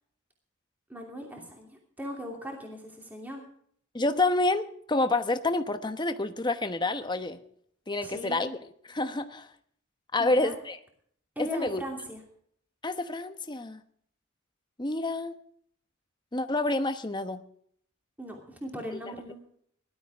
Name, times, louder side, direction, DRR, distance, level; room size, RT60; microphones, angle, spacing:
voice 1, 0.9-3.4 8.0-8.4 10.2-10.5 11.4-12.2 18.2-19.4, equal, 10° right, 1 dB, 2.8 m, -39 dB
voice 2, 3.9-7.4 7.9-8.6 8.9-9.5 10.1-10.8 11.4-11.8 12.8-13.8 14.8-15.4 16.3-17.4 18.9-19.1, left 2 dB, 20° left, 9 dB, 1.0 m, -28 dB
19.0 x 12.5 x 3.5 m, 0.64 s
head